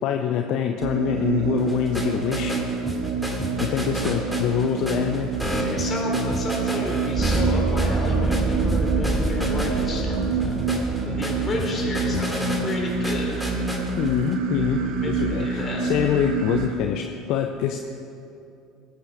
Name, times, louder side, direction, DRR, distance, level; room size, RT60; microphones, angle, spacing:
voice 1, 0.0-2.6 3.6-5.3 14.0-17.8, left 9 dB, 60° left, 5 dB, 0.6 m, -25 dB
sound 1, 0.8-16.7, right 4 dB, 60° right, 1.1 m, -27 dB
sound 2, 1.6-14.3, equal, ahead, 2.4 m, -33 dB
voice 2, 5.6-10.6 11.0-13.5 14.8-15.8, left 2 dB, 30° left, -1 dB, 3.5 m, -32 dB
sound 3, 7.2-14.1, right 2 dB, 15° right, 0.4 m, -27 dB
19.0 x 8.5 x 4.9 m, 2.7 s
hypercardioid pair, 65°, 0 cm